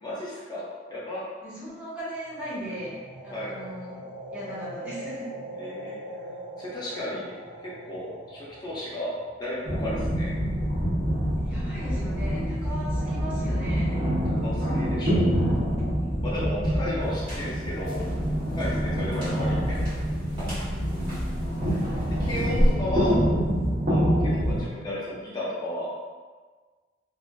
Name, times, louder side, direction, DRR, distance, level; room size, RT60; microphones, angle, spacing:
voice 1, 0.0-0.6 0.9-1.3 3.3-3.5 5.6-6.0 6.6-7.4 7.6-9.1 9.4-10.3 14.3-15.2 16.2-18.1 18.5-19.9 21.7-21.9 22.2-23.2 23.8-25.9, left 1 dB, 25° left, -7 dB, 0.6 m, -34 dB
voice 2, 1.4-3.0 3.2-4.0 4.3-5.3 11.4-14.0 20.4-21.2 22.4-23.6, equal, 10° right, -11 dB, 0.9 m, -38 dB
sound 1, 2.2-10.3, right 1 dB, 90° right, 0.4 m, -41 dB
sound 2, 9.6-24.6, equal, 45° right, 0.8 m, -26 dB
sound 3, 17.0-22.7, equal, 25° right, 1.1 m, -32 dB
2.4 x 2.4 x 2.2 m, 1.4 s
head